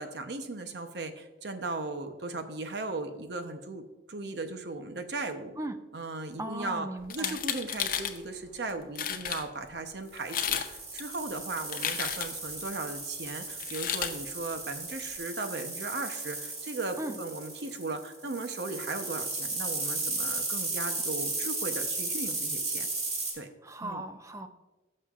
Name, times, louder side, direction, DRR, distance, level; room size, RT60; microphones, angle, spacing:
voice 1, 0.0-5.5 5.9-22.9 23.3-23.5 23.8-24.0, right 3 dB, 65° right, 7 dB, 0.8 m, -37 dB
voice 2, 6.4-7.4 17.0-17.2 23.6-24.5, right 1 dB, 15° right, 8 dB, 0.5 m, -37 dB
sound 1, 7.0-8.2 8.7-8.8 9.0-9.4 10.2-10.7 11.0-12.5 13.6-14.1, left 9 dB, 50° left, 0.7 m, -32 dB
sound 2, 10.1-23.3, right 3 dB, 40° right, 2.5 m, -35 dB
15.5 x 6.5 x 2.5 m, 1.2 s
head